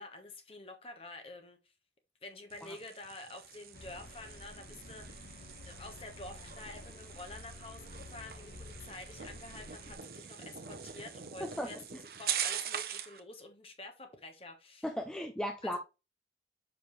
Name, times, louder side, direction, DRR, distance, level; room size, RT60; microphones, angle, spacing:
voice 1, 0.0-1.7 2.2-5.4 5.6-14.9 15.6-15.8, left 2 dB, 30° left, 1.2 m, -49 dB
sound 1, 2.5-13.2, right 9 dB, 55° right, 0.8 m, -43 dB
sound 2, 3.7-10.0, left 2 dB, 55° left, 1.1 m, -51 dB
voice 2, 14.8-15.8, equal, 5° left, 0.5 m, -36 dB
6.7 x 5.2 x 3.2 m
head